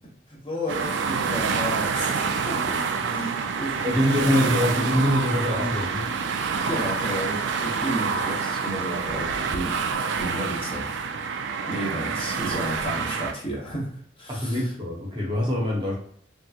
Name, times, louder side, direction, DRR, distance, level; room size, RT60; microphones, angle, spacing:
voice 1, 0.3-2.8 3.1-3.9 4.2-4.5 6.7-9.9 10.2-10.9 11.3-13.9 14.2-14.6, equal, 30° left, -3 dB, 0.8 m, -32 dB
sound 1, 0.7-13.3, right 5 dB, 60° right, 0.3 m, -27 dB
voice 2, 3.8-6.1 14.3-15.9, left 1 dB, 25° right, -3 dB, 0.8 m, -24 dB
3.3 x 2.9 x 2.3 m, 0.64 s
head